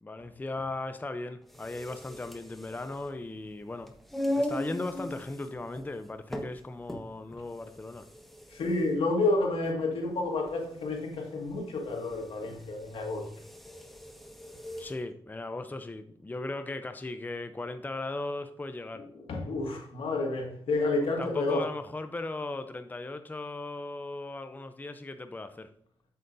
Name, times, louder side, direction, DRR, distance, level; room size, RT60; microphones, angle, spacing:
voice 1, 0.0-3.9 4.3-8.1 14.8-19.1 21.0-25.7, left 2 dB, 20° left, 0.6 m, -37 dB
sound 1, 1.4-15.0, left 1 dB, ahead, 1.2 m, -40 dB
voice 2, 8.5-13.3 19.3-21.6, left 2 dB, 85° left, 2.0 m, -30 dB
7.6 x 7.6 x 2.7 m
cardioid pair, 70°, 9 cm